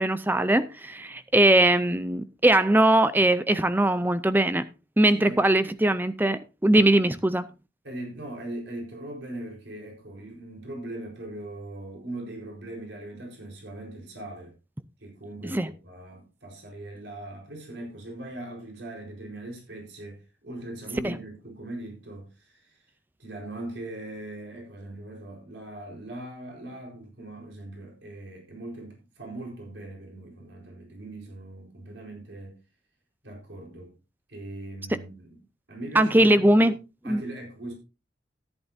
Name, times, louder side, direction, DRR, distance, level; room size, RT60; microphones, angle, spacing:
voice 1, 0.0-4.7 5.0-7.5 15.4-15.7 21.0-21.2 35.9-36.7 37.1-37.2, right 1 dB, 10° right, 0.5 m, -21 dB
voice 2, 7.8-14.5 15.0-22.8 23.2-32.6 33.2-34.0 34.3-35.4 35.7-36.7 37.0-37.7, right 1 dB, 75° right, 4.4 m, -40 dB
14.0 x 10.5 x 2.7 m
head